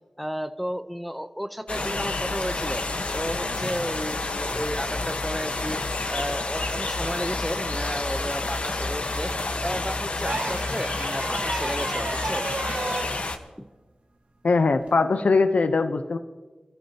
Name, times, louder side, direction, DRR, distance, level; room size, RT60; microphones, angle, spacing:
voice 1, 0.2-2.8 3.1-5.8 6.1-9.3 9.6-12.4 13.6-13.7, equal, ahead, 9 dB, 0.7 m, -33 dB
sound 1, 1.7-13.4, left 2 dB, 65° left, 1.2 m, -29 dB
sound 2, 10.2-13.1 14.8-15.0, right 2 dB, 70° right, 1.4 m, -32 dB
voice 2, 14.4-16.2, left 3 dB, 85° left, 8 dB, 0.7 m, -21 dB
26.5 x 13.5 x 2.9 m, 1.2 s
wide cardioid pair, 75°, 2 cm